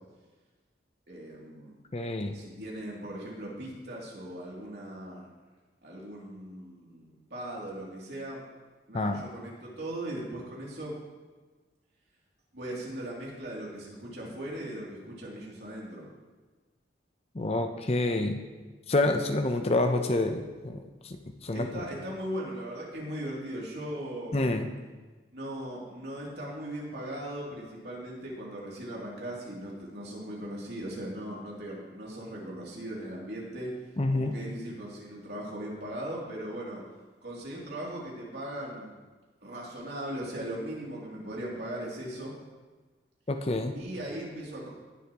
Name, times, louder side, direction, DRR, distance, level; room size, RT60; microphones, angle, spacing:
voice 1, 1.1-1.7 2.3-5.3 5.8-8.4 8.9-10.9 12.5-16.1 21.5-24.6 25.3-33.7 34.1-36.8 37.2-38.9 39.4-42.4 43.7-44.7, right 1 dB, 65° right, -4 dB, 2.8 m, -38 dB
voice 2, 1.9-2.4 8.9-9.2 17.3-18.4 18.9-21.7 24.3-24.7 34.0-34.3 43.3-43.7, left 2 dB, 35° left, 6 dB, 0.6 m, -28 dB
18.5 x 7.0 x 3.0 m, 1.3 s
head